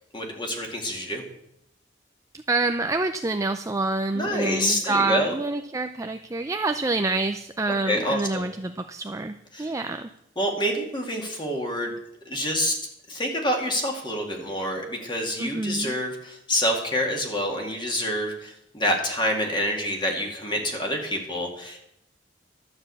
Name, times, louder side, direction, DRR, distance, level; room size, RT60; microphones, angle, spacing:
voice 1, 0.1-1.2 4.1-5.3 7.8-8.5 9.5-9.7 10.4-11.9 12.3-12.8 13.1-21.8, equal, 25° left, 1 dB, 2.3 m, -27 dB
voice 2, 2.5-10.1 15.4-16.0, right 3 dB, 15° right, 7 dB, 0.4 m, -27 dB
12.0 x 6.1 x 8.4 m, 0.81 s
head